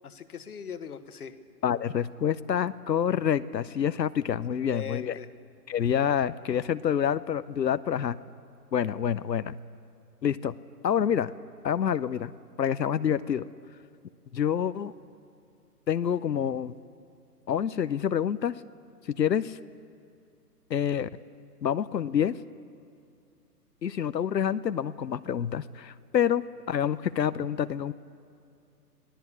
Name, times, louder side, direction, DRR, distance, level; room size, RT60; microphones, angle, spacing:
voice 1, 0.0-1.3 4.6-5.3, left 7 dB, 65° left, 11 dB, 1.5 m, -40 dB
voice 2, 1.6-5.2 5.7-8.2 8.7-9.5 10.2-10.5 10.8-11.3 11.6-12.3 12.6-13.5 14.3-14.9 15.9-16.7 17.5-18.5 19.2-19.6 20.7-21.1 21.6-22.4 23.8-27.9, left 8 dB, 85° left, 14 dB, 0.8 m, -27 dB
22.5 x 17.0 x 8.3 m, 2.4 s
figure-of-eight pair, 140°, 49 cm